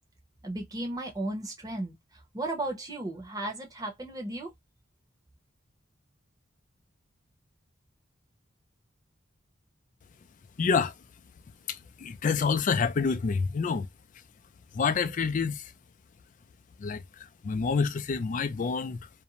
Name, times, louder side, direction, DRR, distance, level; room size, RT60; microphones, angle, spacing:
voice 1, 0.4-1.9 2.3-4.5, right 2 dB, 20° right, 0.8 m, -34 dB
voice 2, 10.6-10.9 11.7-13.9 14.7-15.7 16.8-19.0, left 5 dB, 40° left, 0.3 m, -28 dB
2.5 x 2.1 x 2.8 m
head